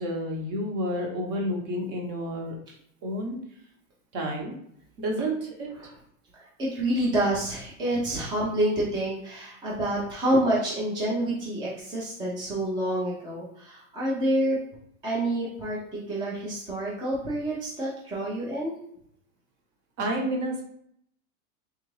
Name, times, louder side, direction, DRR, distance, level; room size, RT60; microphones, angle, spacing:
voice 1, 0.0-2.6 3.0-3.4 4.1-4.5 5.0-5.7 20.0-20.6, equal, 40° right, 1 dB, 0.9 m, -30 dB
voice 2, 6.3-14.6 15.0-18.7, right 1 dB, 10° right, -6 dB, 0.4 m, -28 dB
3.6 x 2.4 x 3.1 m, 0.69 s
supercardioid pair, 140°, 42 cm